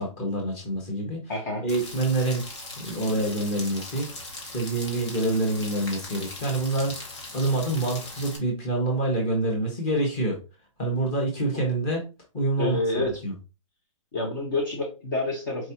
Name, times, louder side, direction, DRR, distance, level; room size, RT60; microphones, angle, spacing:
voice 1, 0.0-1.2 1.6-2.5 2.8-4.1 4.5-10.4 10.8-12.0 12.3-12.8 13.2-13.3, right 2 dB, 20° left, 0 dB, 1.3 m, -26 dB
voice 2, 1.3-1.6 12.6-13.1 14.1-15.7, left 2 dB, 35° left, 0 dB, 1.1 m, -28 dB
Rain, 1.7-8.4, left 2 dB, 55° left, 1.7 m, -39 dB
4.6 x 3.1 x 2.8 m, 0.30 s
hypercardioid pair, 175°, 17 cm